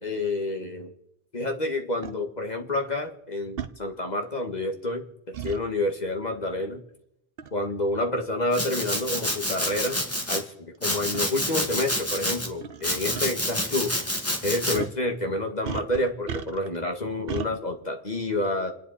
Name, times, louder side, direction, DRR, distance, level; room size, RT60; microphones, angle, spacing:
voice 1, 0.0-0.9 1.3-6.8 7.5-10.0 10.3-13.9 14.4-18.7, left 2 dB, 40° left, 4 dB, 1.9 m, -29 dB
sound 1, 2.0-2.2 3.6-3.8 5.3-5.6 7.4-7.6 8.4-8.5 9.3-9.4 9.7-9.8 11.1-11.3 12.6-12.8 13.1-13.2 14.7-15.0 15.6-16.8 17.3-17.5, right 7 dB, 65° right, 1.0 m, -34 dB
Domestic sounds home sounds, 8.5-10.4 10.8-12.5 12.8-14.8, left 1 dB, 15° left, 2.0 m, -28 dB
28.5 x 10.0 x 4.3 m, 0.79 s
omnidirectional pair, 1.1 m